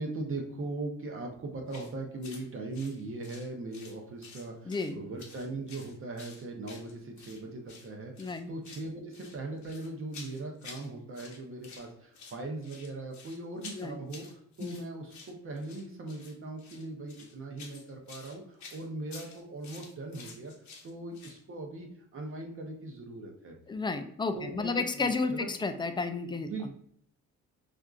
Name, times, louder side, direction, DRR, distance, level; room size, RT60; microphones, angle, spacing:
voice 1, 0.0-20.5 20.8-21.9 22.1-23.5 24.3-25.5 26.4-26.7, right 2 dB, 45° right, 2 dB, 0.7 m, -39 dB
sound 1, 1.7-1.9 2.2-2.4 2.7-4.9 5.2-7.4 7.7-7.9 8.2-8.9 9.1-10.9 11.1-11.9 12.1-21.4, left 4 dB, 70° left, 0.9 m, -50 dB
voice 2, 4.7-5.0 8.2-8.5 13.7-14.0 14.6-14.8 23.7-26.5, left 4 dB, 15° left, 8 dB, 0.3 m, -32 dB
4.3 x 2.5 x 2.3 m, 0.67 s
cardioid pair, 90°, 30 cm